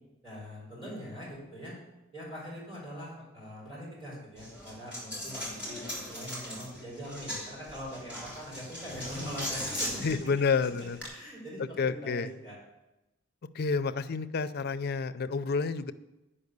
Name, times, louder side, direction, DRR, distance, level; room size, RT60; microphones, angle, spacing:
voice 1, 0.2-1.7 2.1-10.1 11.1-12.6, equal, 25° right, -5 dB, 4.0 m, -42 dB
Coin (dropping), 4.4-11.1, equal, 5° right, 3.3 m, -39 dB
voice 2, 10.0-11.0 11.8-12.3 13.5-15.9, left 5 dB, 50° left, 12 dB, 0.4 m, -29 dB
9.5 x 5.5 x 6.7 m, 0.99 s
head